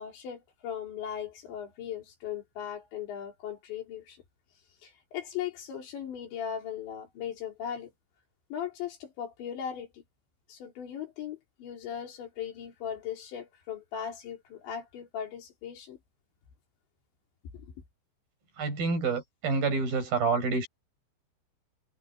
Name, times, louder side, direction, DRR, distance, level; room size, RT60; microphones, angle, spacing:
voice 1, 0.0-4.2 4.8-7.9 8.5-10.0 10.5-16.0 17.5-17.7, left 9 dB, 70° left, 6.4 m, -38 dB
voice 2, 18.6-20.7, right 4 dB, 50° right, 7.9 m, -28 dB
omnidirectional pair, 5.3 m